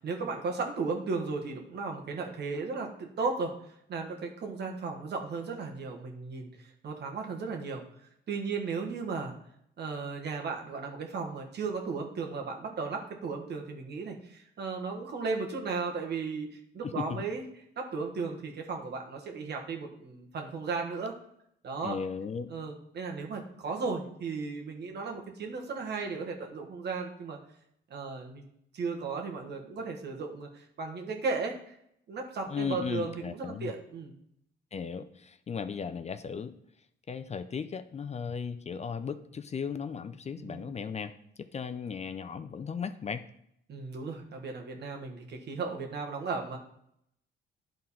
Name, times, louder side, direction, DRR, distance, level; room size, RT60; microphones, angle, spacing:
voice 1, 0.0-7.8 8.3-9.3 9.8-17.4 17.8-21.1 21.6-22.0 22.5-27.4 27.9-28.4 28.7-31.7 32.1-34.1 40.4-40.8 43.7-46.6, right 4 dB, 60° right, 2 dB, 1.5 m, -35 dB
voice 2, 16.8-17.2 21.8-22.5 32.5-33.7 34.7-36.5 37.1-41.1 41.4-43.3, left 6 dB, 35° left, 10 dB, 0.5 m, -36 dB
11.0 x 3.9 x 4.2 m, 0.74 s
cardioid pair, 90°, 20 cm